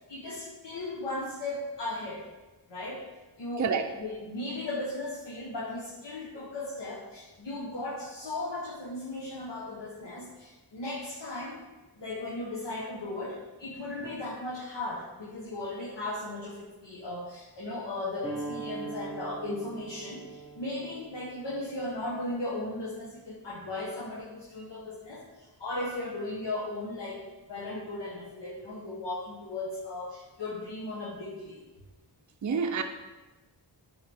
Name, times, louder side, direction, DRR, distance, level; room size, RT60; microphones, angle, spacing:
voice 1, 0.1-2.3 2.7-3.1 3.4-3.7 4.0-11.6 12.0-31.6, left 2 dB, 70° left, -6 dB, 1.2 m, -37 dB
sound 1, 18.2-23.4, right 3 dB, 15° left, 1.8 m, -42 dB
voice 2, 32.4-32.8, right 6 dB, 45° right, 5 dB, 0.5 m, -27 dB
8.6 x 4.6 x 3.5 m, 1.2 s
wide cardioid pair, 70°, 43 cm